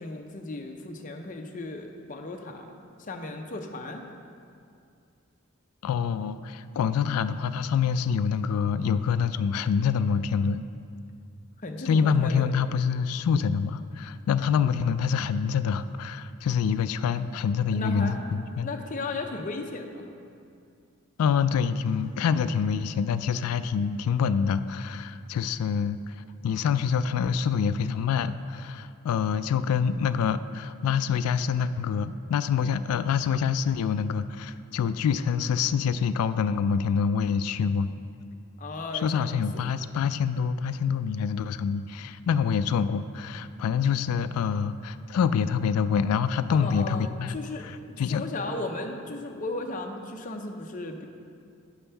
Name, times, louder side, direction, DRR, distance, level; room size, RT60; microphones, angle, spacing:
voice 1, 0.0-2.7 3.0-4.0 11.6-12.5 17.7-18.2 18.6-20.1 38.6-39.6 46.5-47.7 48.0-51.1, left 2 dB, 35° left, 3 dB, 0.6 m, -35 dB
voice 2, 5.8-10.6 11.9-18.7 21.2-37.9 39.0-47.4 48.0-48.2, left 6 dB, 90° left, 15 dB, 0.3 m, -26 dB
9.7 x 7.0 x 3.4 m, 2.4 s
head